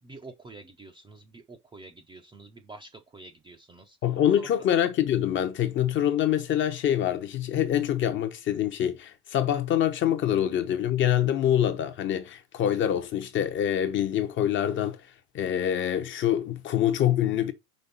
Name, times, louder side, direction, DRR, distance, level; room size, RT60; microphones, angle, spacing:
voice 1, 0.0-4.0 4.4-4.5, right 3 dB, 10° right, 0.5 m, -47 dB
voice 2, 4.0-15.1 15.3-17.5, left 10 dB, 25° left, 0.7 m, -25 dB
5.4 x 3.8 x 5.5 m
hypercardioid pair, 125°, 46 cm